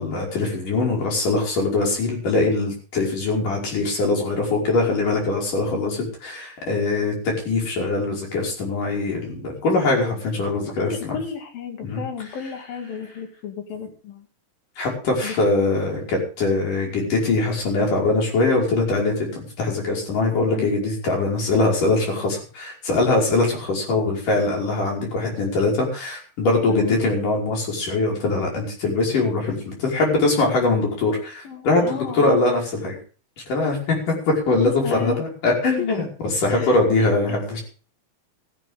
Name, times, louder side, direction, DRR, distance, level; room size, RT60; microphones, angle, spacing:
voice 1, 0.0-11.2 11.8-12.0 14.8-33.0 33.5-36.1 36.3-37.6, left 3 dB, 65° left, -1 dB, 6.9 m, -22 dB
voice 2, 10.8-14.3 15.2-15.4 20.5-20.7 26.7-27.0 31.4-32.4 34.6-35.2 35.8-35.9 36.4-37.4, left 7 dB, 80° left, 5 dB, 4.2 m, -33 dB
16.0 x 14.5 x 3.7 m, 0.39 s
omnidirectional pair, 4.0 m